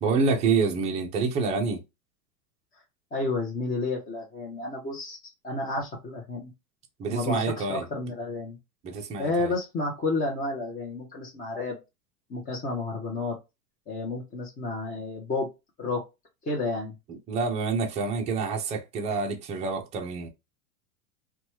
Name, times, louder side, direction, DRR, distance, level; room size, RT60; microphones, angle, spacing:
voice 1, 0.0-1.8 7.0-7.8 8.8-9.5 17.1-20.3, right 4 dB, 15° right, 0.4 m, -27 dB
voice 2, 3.1-5.2 5.4-6.5 7.1-8.6 9.2-11.8 12.3-13.3 13.9-15.5 15.8-16.0 16.4-16.9, left 2 dB, 20° left, 0.7 m, -31 dB
3.0 x 2.3 x 2.7 m
supercardioid pair, 135°, 45 cm